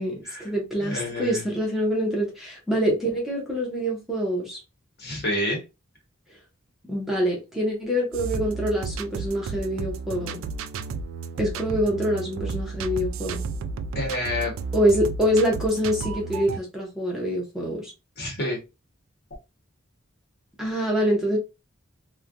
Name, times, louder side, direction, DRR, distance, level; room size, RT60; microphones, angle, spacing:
voice 1, 0.0-4.6 6.8-10.4 11.4-13.4 14.7-17.9 20.6-21.4, equal, ahead, 0.8 m, -25 dB
voice 2, 0.8-1.4 5.0-5.6 13.9-14.5 18.2-18.6, left 1 dB, 50° left, 1.2 m, -28 dB
sound 1, 8.1-16.6, right 4 dB, 70° right, 0.3 m, -33 dB
3.1 x 2.2 x 2.5 m
head